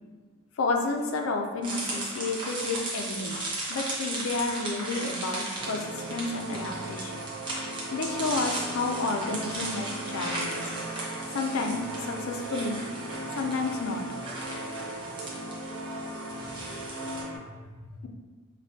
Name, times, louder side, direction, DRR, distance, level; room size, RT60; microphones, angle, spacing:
voice 1, 0.6-3.4 3.7-7.2 7.9-10.6 11.3-12.8 13.4-14.4 18.0-18.1, left 3 dB, 70° left, 3 dB, 0.4 m, -31 dB
sound 1, 1.6-17.2, right 2 dB, 20° right, 0.7 m, -37 dB
sound 2, 5.6-17.4, right 1 dB, 60° right, 0.6 m, -38 dB
5.2 x 2.2 x 2.7 m, 1.3 s
head